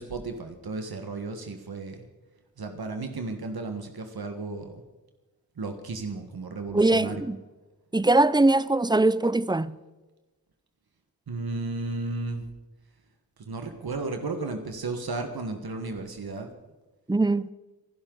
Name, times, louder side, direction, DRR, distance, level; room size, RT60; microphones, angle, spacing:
voice 1, 0.0-2.1 2.6-4.8 5.6-7.3 11.3-12.4 13.5-16.5, right 3 dB, 75° right, 1.5 m, -34 dB
voice 2, 6.7-7.4 7.9-9.8 17.1-17.5, right 2 dB, 10° right, 0.4 m, -21 dB
26.0 x 12.0 x 3.9 m
wide cardioid pair, 100°, 37 cm